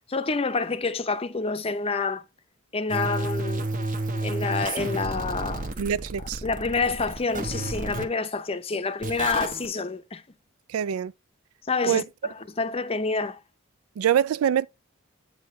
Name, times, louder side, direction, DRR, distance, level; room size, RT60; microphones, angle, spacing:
voice 1, 0.1-2.2 2.7-3.7 4.2-5.7 6.4-10.2 11.7-13.4, left 4 dB, 25° left, 0.6 m, -28 dB
sound 1, 2.9-8.1 9.0-9.7, right 2 dB, 40° right, 0.9 m, -31 dB
voice 2, 5.8-6.4 10.7-11.1 11.8-12.0 14.0-14.7, right 9 dB, 90° right, 0.3 m, -24 dB
8.2 x 4.8 x 3.1 m
head